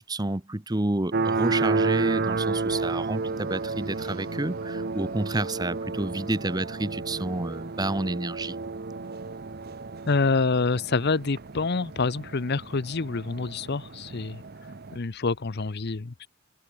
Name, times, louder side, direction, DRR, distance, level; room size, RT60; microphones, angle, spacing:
voice 1, 0.0-8.6, right 2 dB, 20° right, 1.0 m, -29 dB
sound 1, 1.1-15.0, right 3 dB, 45° right, 0.8 m, -31 dB
sound 2, 1.5-12.2, right 1 dB, 85° right, 2.3 m, -48 dB
voice 2, 10.1-14.4 14.9-16.3, left 4 dB, 50° left, 0.7 m, -27 dB
head